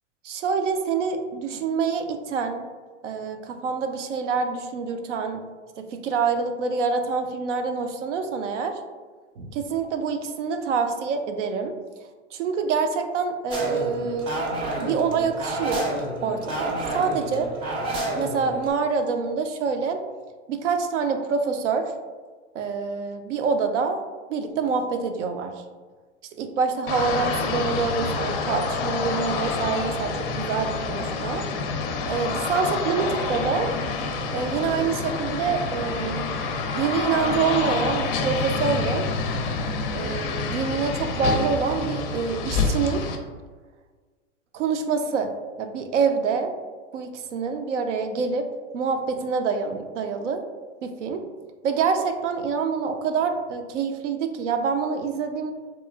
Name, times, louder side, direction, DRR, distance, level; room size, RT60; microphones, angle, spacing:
voice 1, 0.2-2.6 3.0-5.4 5.8-8.8 9.4-11.7 12.3-14.4 14.8-15.9 16.2-17.5 18.1-20.0 20.5-21.9 22.5-24.0 24.3-25.5 26.4-31.5 32.1-33.7 34.3-36.3 36.7-39.0 39.9-43.0 44.5-45.3 45.6-46.5 46.9-48.5 48.7-50.4 50.8-51.2 51.6-55.5, right 5 dB, 75° right, 6 dB, 0.5 m, -26 dB
sound 1, 13.5-18.7, right 1 dB, 15° right, 0.3 m, -30 dB
sound 2, 26.9-43.2, left 4 dB, 50° left, 0.4 m, -27 dB
2.9 x 2.3 x 2.3 m, 1.4 s
hypercardioid pair, 110°, 36 cm